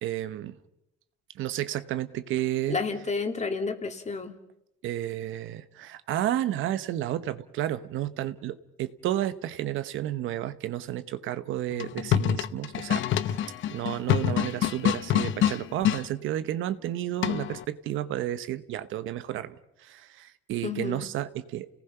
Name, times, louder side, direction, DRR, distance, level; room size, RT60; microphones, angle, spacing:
voice 1, 0.0-0.6 1.3-2.8 4.8-13.4 13.7-21.7, right 12 dB, 90° right, 1.1 m, -32 dB
voice 2, 2.7-4.3 20.6-21.1, left 4 dB, 35° left, 2.7 m, -31 dB
sound 1, 11.7-16.0 17.2-17.6, left 10 dB, 75° left, 0.9 m, -26 dB
29.5 x 18.5 x 5.8 m
cardioid pair, 90°, 20 cm